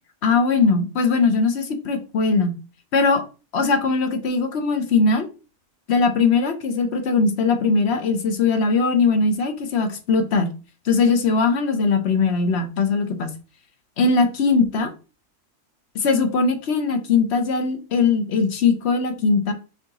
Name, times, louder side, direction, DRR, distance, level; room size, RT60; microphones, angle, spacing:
voice 1, 0.2-2.5 2.9-3.2 3.5-5.3 5.9-10.5 10.8-13.3 14.0-14.9 15.9-19.5, left 4 dB, 55° left, 8 dB, 0.9 m, -20 dB
4.7 x 2.9 x 3.8 m, 0.33 s
omnidirectional pair, 1.5 m